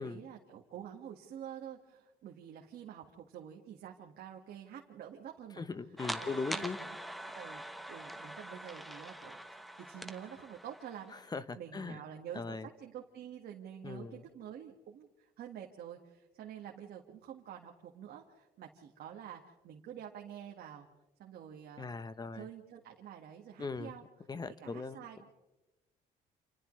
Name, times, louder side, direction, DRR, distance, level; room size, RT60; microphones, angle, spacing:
voice 1, 0.0-5.6 6.2-7.0 7.2-7.6 7.9-11.2 11.6-20.9 21.2-21.9 22.3-24.0 24.6-25.3, right 9 dB, 65° right, 1 dB, 1.9 m, -48 dB
voice 2, 5.6-6.8 11.3-12.0 12.3-12.7 13.8-14.2 21.8-22.5 23.6-23.9 24.3-25.0, left 4 dB, 25° left, 13 dB, 0.9 m, -39 dB
sound 1, 6.0-11.2, right 1 dB, ahead, 1.3 m, -44 dB
29.5 x 28.0 x 3.3 m, 1.1 s
cardioid pair, 110°, 17 cm